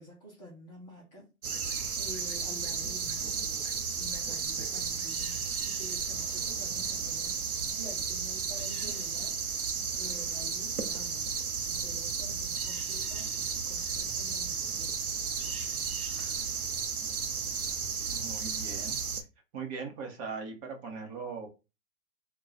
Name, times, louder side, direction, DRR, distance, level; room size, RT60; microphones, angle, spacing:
voice 1, 0.0-3.3 3.9-9.4 9.9-11.3 11.6-15.6, equal, 10° left, 0.4 m, -49 dB
sound 1, 1.4-19.2, right 5 dB, 85° right, 0.8 m, -33 dB
voice 2, 18.1-19.0 19.5-21.5, right 5 dB, 30° right, 0.9 m, -39 dB
2.7 x 2.3 x 3.9 m
hypercardioid pair, 130°, 43 cm